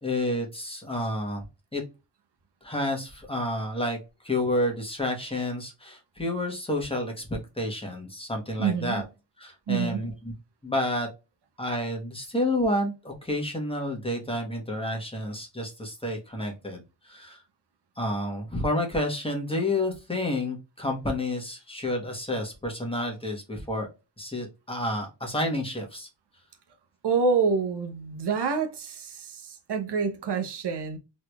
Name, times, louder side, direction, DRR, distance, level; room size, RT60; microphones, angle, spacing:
voice 1, 0.0-1.4 1.7-1.8 2.6-4.0 4.2-9.0 9.4-10.3 10.6-11.1 11.6-17.4 18.0-23.9 24.2-26.1, left 1 dB, 15° left, 1.1 m, -30 dB
voice 2, 8.6-9.1 9.7-10.1 27.0-31.0, right 5 dB, 70° right, 0.8 m, -27 dB
3.7 x 3.1 x 2.3 m
wide cardioid pair, 115°, 43 cm